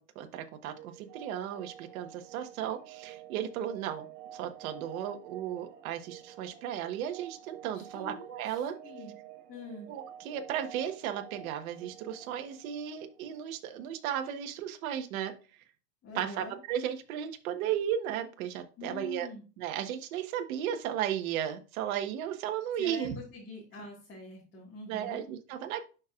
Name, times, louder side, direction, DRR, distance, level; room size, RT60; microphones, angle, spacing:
voice 1, 0.0-4.1 4.3-8.8 9.9-15.6 16.1-19.3 19.6-23.2 24.9-25.8, right 10 dB, 60° right, 7 dB, 1.4 m, -35 dB
sound 1, 0.7-13.5, right 10 dB, 90° right, 1.5 m, -50 dB
voice 2, 7.7-9.1 9.5-9.9 16.0-16.6 18.8-19.4 22.8-25.2, left 3 dB, 25° left, -3 dB, 2.0 m, -45 dB
11.5 x 4.6 x 2.5 m, 0.35 s
supercardioid pair, 140°, 47 cm